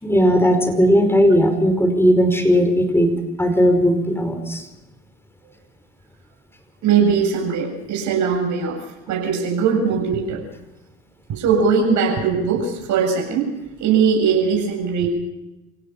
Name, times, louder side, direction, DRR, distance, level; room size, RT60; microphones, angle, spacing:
voice 1, 0.0-3.1 3.4-4.7, equal, 5° left, 7 dB, 5.1 m, -17 dB
voice 2, 6.8-10.4 11.3-13.5 13.8-15.1, right 6 dB, 55° right, 2 dB, 7.7 m, -20 dB
28.0 x 17.0 x 5.6 m, 0.97 s
hypercardioid pair, 75°, 36 cm